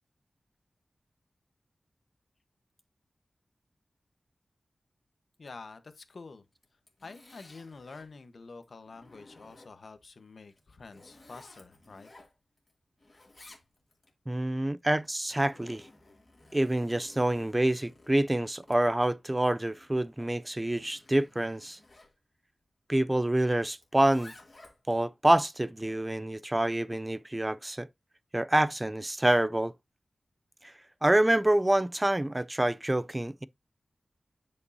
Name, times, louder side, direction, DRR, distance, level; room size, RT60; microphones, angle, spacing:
voice 1, 5.4-6.4 7.0-12.1, left 4 dB, 70° left, 1.0 m, -48 dB
Zipper (clothing), 6.5-8.1 8.6-10.0 10.5-12.7 13.0-14.1 15.0-22.1 23.8-25.0, left 2 dB, 35° left, 2.3 m, -56 dB
voice 2, 14.3-15.9 16.5-21.8 22.9-24.3 24.9-27.9 28.3-29.7 30.6-30.7 31.0-33.5, right 1 dB, 20° right, 0.3 m, -27 dB
9.5 x 5.3 x 2.7 m
wide cardioid pair, 90°, 0 cm